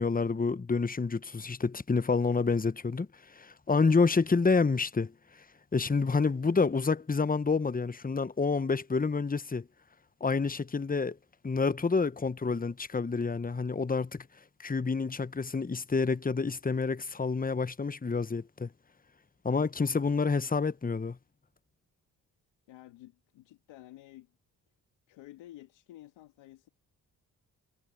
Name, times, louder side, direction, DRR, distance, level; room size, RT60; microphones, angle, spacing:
voice 1, 0.0-5.1 5.7-9.7 10.2-11.2 11.4-14.3 14.6-18.7 19.4-21.2, left 4 dB, 20° left, 1.0 m, -28 dB
voice 2, 22.7-24.3 25.1-26.7, left 15 dB, 85° left, 2.7 m, -51 dB
hypercardioid pair, 40°, 44 cm